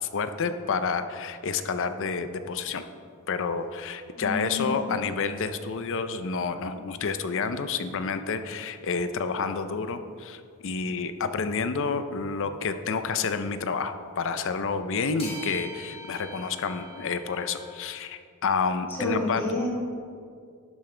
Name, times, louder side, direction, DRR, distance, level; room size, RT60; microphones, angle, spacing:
voice 1, 0.0-2.8 3.3-19.4, left 5 dB, 60° left, 10 dB, 0.6 m, -29 dB
voice 2, 4.1-4.9 18.9-19.7, left 2 dB, 10° left, -5 dB, 2.4 m, -30 dB
sound 1, 6.4-6.5 11.7-11.8 13.6-13.7 15.2-17.7, left 1 dB, 25° left, 2.0 m, -42 dB
11.5 x 8.7 x 3.3 m, 2.2 s
head